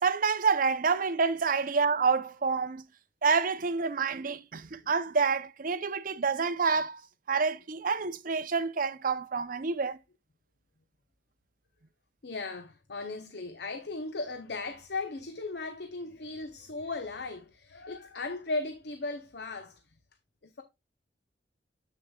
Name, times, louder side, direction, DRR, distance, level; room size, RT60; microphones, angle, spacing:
voice 1, 0.0-2.8 3.2-7.0 7.3-10.0, right 5 dB, 50° right, 0.6 m, -28 dB
voice 2, 12.2-19.9 20.4-20.6, left 3 dB, 65° left, 0.8 m, -37 dB
7.6 x 6.4 x 2.3 m
head